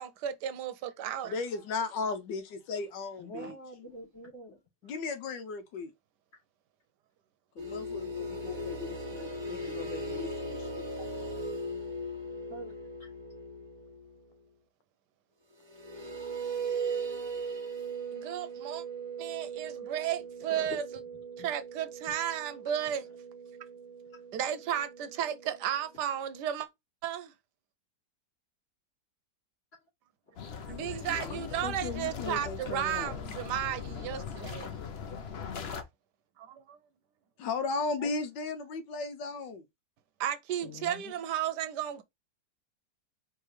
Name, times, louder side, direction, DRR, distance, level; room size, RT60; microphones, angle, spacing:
voice 1, 0.0-1.3 3.4-3.5 18.1-18.8 19.2-20.9 21.4-23.1 24.3-26.7 27.0-27.3 30.7-34.8 36.4-36.8 40.2-42.0, right 10 dB, 75° right, 1.2 m, -34 dB
voice 2, 1.2-3.6 4.8-5.9 7.6-10.9 31.2-33.1 37.4-39.6, left 4 dB, 85° left, 1.4 m, -36 dB
voice 3, 3.2-4.6 12.5-12.7 20.5-20.8 21.4-21.5 38.0-38.1 40.6-41.1, equal, 40° left, 2.8 m, -43 dB
sound 1, 7.6-14.2 15.6-25.9, right 2 dB, 25° right, 0.7 m, -39 dB
sound 2, 30.4-35.8, left 6 dB, 60° left, 0.7 m, -40 dB
4.7 x 3.2 x 3.2 m
omnidirectional pair, 1.9 m